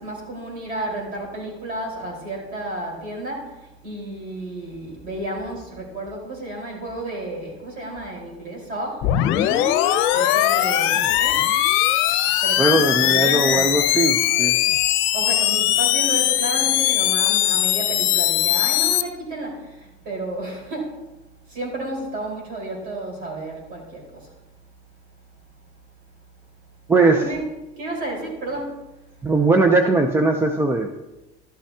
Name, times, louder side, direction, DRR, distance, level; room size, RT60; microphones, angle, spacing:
voice 1, 0.0-9.1 10.1-11.5 12.4-13.7 15.1-21.0 21.5-24.3 27.1-27.4 27.8-28.8, right 1 dB, 50° right, -2 dB, 4.4 m, -32 dB
sound 1, 9.0-19.0, left 13 dB, 70° left, 0.7 m, -20 dB
voice 2, 12.6-14.5 26.9-27.2 29.2-30.9, right 3 dB, 10° right, 4 dB, 0.5 m, -19 dB
12.5 x 12.0 x 2.8 m, 1.0 s
cardioid pair, 155°, 21 cm